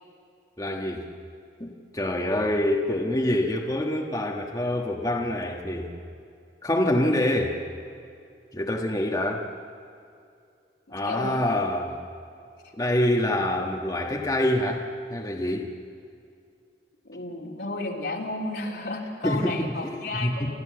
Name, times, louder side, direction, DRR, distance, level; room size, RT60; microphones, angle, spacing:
voice 1, 0.6-1.1 1.6-5.9 6.6-7.6 8.5-9.4 10.9-12.0 12.8-15.7 19.2-20.6, left 1 dB, 20° left, -1 dB, 1.3 m, -26 dB
voice 2, 11.0-11.4 12.6-12.7 17.0-20.6, left 2 dB, 70° left, -2 dB, 3.3 m, -32 dB
28.5 x 13.5 x 7.8 m, 2.4 s
head